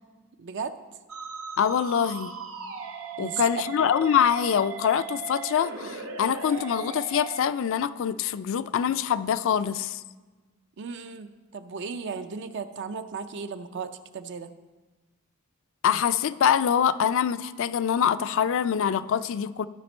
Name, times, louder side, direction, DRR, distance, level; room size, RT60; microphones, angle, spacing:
voice 1, 0.4-0.7 3.2-3.5 10.8-14.5, right 5 dB, 60° right, 10 dB, 0.5 m, -35 dB
Musical instrument, 1.1-7.4, right 6 dB, 75° right, 0.9 m, -38 dB
voice 2, 1.6-2.3 3.2-10.0 15.8-19.7, left 8 dB, 65° left, 14 dB, 0.4 m, -24 dB
13.5 x 5.1 x 4.3 m, 1.3 s
head